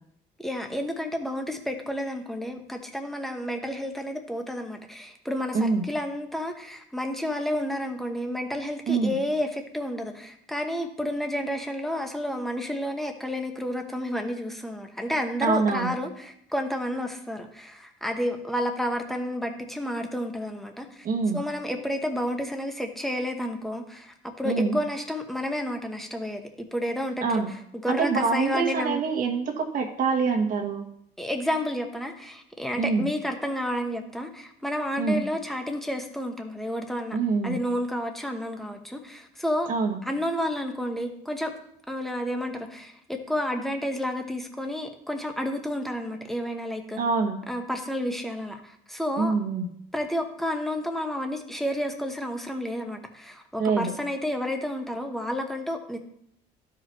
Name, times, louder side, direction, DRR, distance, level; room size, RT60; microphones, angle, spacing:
voice 1, 0.4-21.1 21.3-27.4 27.7-29.1 31.2-37.2 37.4-39.7 40.0-41.5 41.9-47.0 47.5-49.3 49.9-56.0, equal, ahead, 3 dB, 1.2 m, -30 dB
voice 2, 5.5-5.9 8.9-9.2 15.4-15.9 21.0-21.4 24.4-24.8 27.2-27.5 27.9-30.9 32.8-33.1 35.0-35.2 37.1-37.6 39.7-40.0 47.0-47.4 49.2-49.7 53.6-53.9, right 4 dB, 55° right, 3 dB, 1.5 m, -25 dB
13.0 x 4.9 x 3.0 m, 0.73 s
cardioid pair, 110°, 17 cm